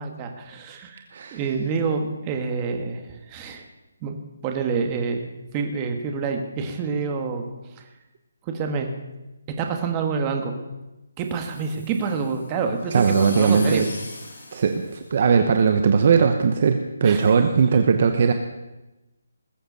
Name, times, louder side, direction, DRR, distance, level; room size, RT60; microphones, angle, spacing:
voice 1, 0.0-1.0 1.3-3.7 4.0-4.2 4.4-7.5 7.8-7.9 8.4-8.9 9.6-10.5 11.2-13.8 14.8-14.9 17.0-17.3, right 5 dB, 15° right, 4 dB, 1.4 m, -27 dB
sound 1, 11.2-15.6, left 2 dB, 60° left, 5.1 m, -40 dB
voice 2, 12.9-13.9 14.5-18.3, right 6 dB, 35° right, 7 dB, 0.9 m, -19 dB
20.0 x 7.9 x 6.8 m, 1.0 s
hypercardioid pair, 175°, 0 cm